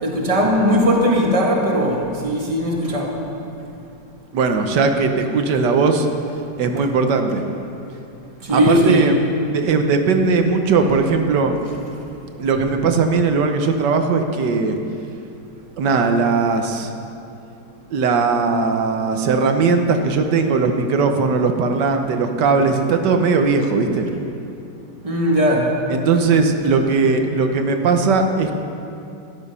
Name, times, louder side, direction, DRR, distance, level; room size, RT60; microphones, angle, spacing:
voice 1, 0.0-3.1 8.5-9.1 25.0-25.6, equal, 20° right, -2 dB, 1.7 m, -18 dB
voice 2, 4.3-6.1 6.6-7.4 8.5-9.2 9.5-11.6 12.4-14.8 15.8-16.9 17.9-24.1 25.9-28.5, right 4 dB, 75° right, 5 dB, 1.6 m, -18 dB
13.0 x 11.5 x 5.5 m, 2.7 s
omnidirectional pair, 1.9 m